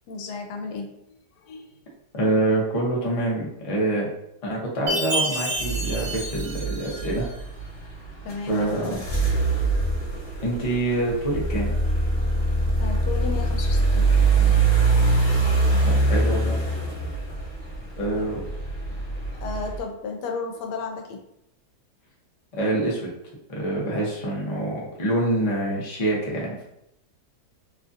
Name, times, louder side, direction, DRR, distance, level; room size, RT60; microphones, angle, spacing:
voice 1, 0.1-1.7 8.2-9.0 12.8-14.1 18.1-18.3 19.4-21.2, left 4 dB, 85° left, 3 dB, 1.2 m, -33 dB
voice 2, 2.1-4.1 4.4-7.3 8.5-9.0 10.4-11.7 15.8-16.6 18.0-18.4 22.6-23.1 23.5-26.7, right 1 dB, 50° left, -4 dB, 0.4 m, -26 dB
Chime, 4.9-7.4, right 1 dB, 45° right, 0.9 m, -29 dB
sound 1, 5.6-19.8, right 3 dB, 35° left, 1.4 m, -24 dB
3.0 x 2.5 x 2.4 m, 0.82 s
omnidirectional pair, 1.8 m